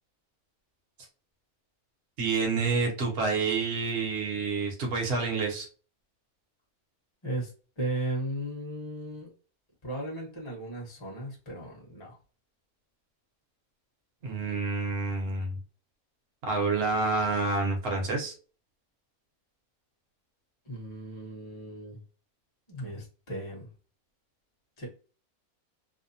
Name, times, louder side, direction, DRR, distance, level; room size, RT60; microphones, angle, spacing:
voice 1, 2.2-5.7 14.2-15.6 16.4-18.3, right 4 dB, 50° right, 0 dB, 1.0 m, -28 dB
voice 2, 7.8-9.3 9.8-12.2 20.7-22.0 22.7-23.7 24.8-24.9, right 1 dB, 25° left, -3 dB, 0.8 m, -36 dB
2.7 x 2.1 x 2.7 m, 0.37 s
omnidirectional pair, 1.6 m